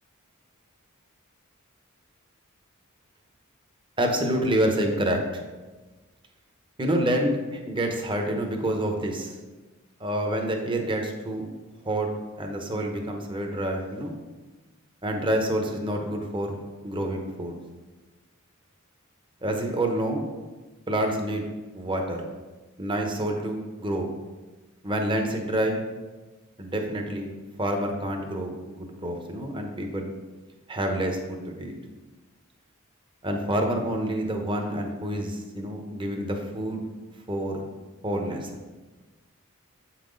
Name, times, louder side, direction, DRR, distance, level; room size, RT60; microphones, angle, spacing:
voice 1, 4.0-5.4 6.8-9.4 10.0-11.5 11.8-12.1 12.4-14.2 15.0-16.5 16.8-17.6 19.4-20.3 20.9-21.4 21.7-22.2 22.8-24.1 24.8-25.9 26.6-27.3 27.6-30.1 30.7-31.7 33.2-36.8 37.3-37.6 38.0-38.6, right 1 dB, 25° right, 3 dB, 1.0 m, -28 dB
8.0 x 5.9 x 3.9 m, 1.2 s
head